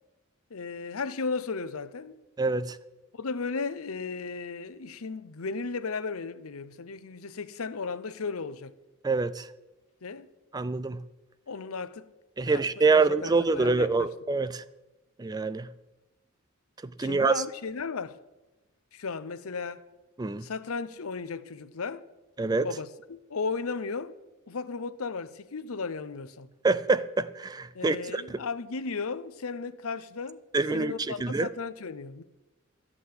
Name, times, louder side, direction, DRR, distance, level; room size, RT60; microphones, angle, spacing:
voice 1, 0.5-2.2 3.1-8.7 10.0-10.3 11.5-12.1 12.4-14.1 17.0-18.2 18.9-19.9 20.4-22.1 22.6-24.1 24.5-26.5 27.7-30.4 30.7-32.2, left 4 dB, 90° left, 0.7 m, -35 dB
voice 2, 2.4-2.8 9.0-9.5 10.5-11.0 12.4-14.6 15.2-15.7 16.8-17.4 20.2-20.5 22.4-22.7 26.6-28.4 30.5-31.5, right 3 dB, 20° right, 0.4 m, -26 dB
13.5 x 6.1 x 9.5 m
head